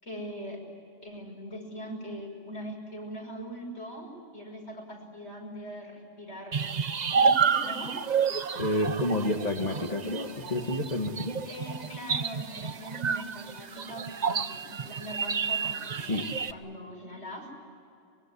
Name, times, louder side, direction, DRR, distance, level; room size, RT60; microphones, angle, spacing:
voice 1, 0.0-0.6 1.0-6.8 7.1-8.0 11.4-16.1 16.5-17.5, equal, 65° left, 0 dB, 6.2 m, -41 dB
sound 1, 6.5-16.5, right 6 dB, 40° right, 0.8 m, -30 dB
voice 2, 8.6-11.4 16.0-16.5, left 1 dB, 35° left, 2 dB, 1.8 m, -30 dB
24.0 x 23.0 x 9.9 m, 2.6 s
omnidirectional pair, 1.2 m